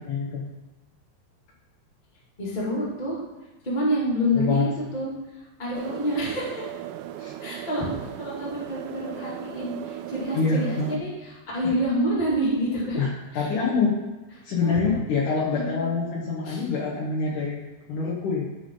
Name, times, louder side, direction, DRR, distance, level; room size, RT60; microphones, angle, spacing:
voice 1, 0.1-0.5 4.3-4.7 7.2-7.3 10.3-11.0 11.6-11.7 13.0-14.1 14.4-17.6 17.9-18.5, left 4 dB, 85° left, -5 dB, 1.8 m, -26 dB
voice 2, 2.4-3.2 3.6-6.7 7.4-13.0 13.3-13.5 14.6-14.9 15.5-15.8 16.4-16.6, equal, 20° left, -6 dB, 1.2 m, -28 dB
sound 1, 5.7-11.0, right 11 dB, 85° right, 2.5 m, -37 dB
14.5 x 5.4 x 3.9 m, 1.1 s
omnidirectional pair, 5.5 m